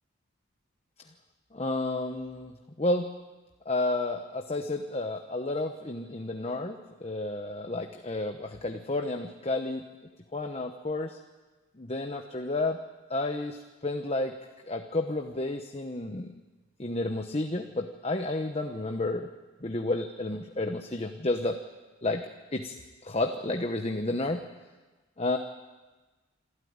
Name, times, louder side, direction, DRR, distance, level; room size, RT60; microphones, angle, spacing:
voice 1, 1.5-3.2 3.6-9.8 10.3-11.2 11.8-12.8 13.1-14.4 14.7-16.4 16.8-19.3 19.6-21.6 22.0-22.7 23.0-24.4 25.2-25.4, left 2 dB, 30° left, 5 dB, 1.0 m, -31 dB
27.0 x 13.5 x 9.5 m, 1.3 s
head